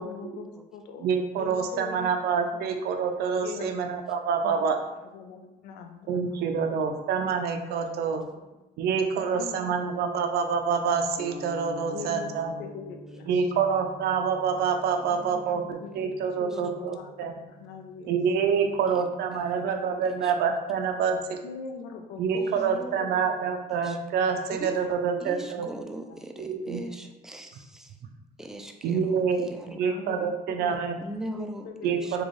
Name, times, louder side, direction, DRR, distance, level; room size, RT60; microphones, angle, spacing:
voice 1, 0.0-1.1 1.4-2.1 2.5-2.6 3.4-3.9 4.4-4.7 5.1-6.4 6.9-7.0 9.3-9.7 11.9-13.3 15.8-17.3 17.6-18.1 21.4-22.5 22.9-23.1 25.6-25.7 26.6-26.7 29.7-30.3 30.6-30.8 31.3-32.1, left 5 dB, 85° left, 5 dB, 0.5 m, -41 dB
voice 2, 1.0-4.8 6.1-8.3 8.8-12.5 13.3-17.3 18.1-21.4 22.2-25.7 26.4-26.8 28.8-29.5 29.8-31.0 31.8-32.2, right 6 dB, 70° right, 4 dB, 0.4 m, -27 dB
sound 1, 11.2-19.5, equal, 55° left, 1.5 m, -47 dB
voice 3, 15.0-15.7 16.5-16.6 18.9-19.0 19.3-19.9 20.2-20.3 22.4-23.1 23.8-24.0 24.5-24.7 25.2-28.0 28.4-29.8 31.0-32.2, right 1 dB, 5° right, 4 dB, 0.3 m, -41 dB
3.7 x 2.3 x 3.1 m, 1.0 s
cardioid pair, 110°, 17 cm